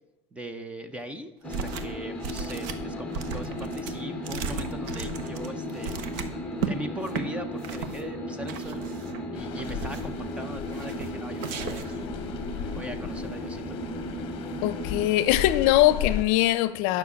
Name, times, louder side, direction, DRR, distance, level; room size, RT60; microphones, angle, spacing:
voice 1, 0.3-6.0 6.7-8.9 9.3-12.1 12.7-13.6, equal, 10° right, 0.6 m, -40 dB
sound 1, 1.4-15.1, equal, 5° left, 1.3 m, -35 dB
sound 2, 1.5-2.0 2.2-6.7 7.1-7.2 7.6-8.0 8.5-9.2 9.6-10.2 10.7-11.1 11.4-12.0, right 6 dB, 60° right, 1.0 m, -35 dB
sound 3, 9.3-16.2, left 9 dB, 40° left, 1.0 m, -37 dB
voice 2, 14.6-17.0, left 14 dB, 60° left, 0.6 m, -22 dB
9.1 x 5.9 x 8.2 m
cardioid pair, 165°, 15 cm